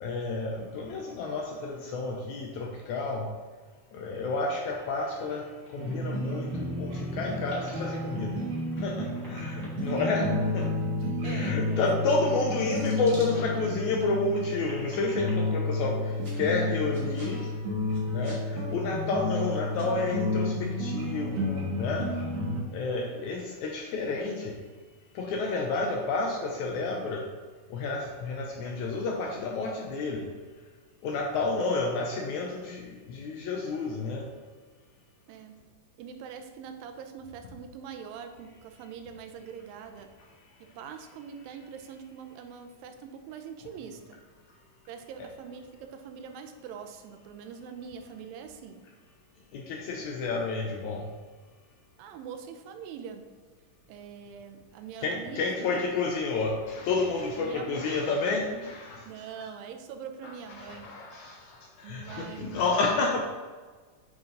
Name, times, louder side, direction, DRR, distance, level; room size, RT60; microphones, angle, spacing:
voice 1, 0.0-3.3 3.9-8.4 8.8-10.3 10.5-10.7 11.2-16.0 16.3-17.4 18.1-22.1 22.7-24.6 25.2-27.2 27.7-30.3 31.0-34.3 49.5-51.0 55.0-59.0 60.2-60.3 60.6-61.4 61.8-63.2, left 3 dB, 75° left, 0 dB, 1.8 m, -30 dB
sound 1, 5.8-22.6, left 2 dB, 60° right, 1.3 m, -31 dB
sound 2, 7.5-8.5 8.9-10.6 11.0-11.1 11.8-11.9 12.5-13.7 14.2-15.4 16.1-16.6 16.9-17.5 17.9-18.4 18.9-19.0 19.4-19.5 19.7-19.9, right 1 dB, 20° right, 1.8 m, -49 dB
voice 2, 11.2-12.2 35.3-35.6 36.0-40.1 40.6-44.2 44.9-48.9 52.0-53.3 53.9-55.8 57.4-57.8 58.5-58.6 59.0-60.9 61.8-62.7, right 7 dB, 85° right, 6 dB, 2.4 m, -43 dB
8.6 x 4.6 x 3.9 m, 1.4 s
omnidirectional pair, 4.0 m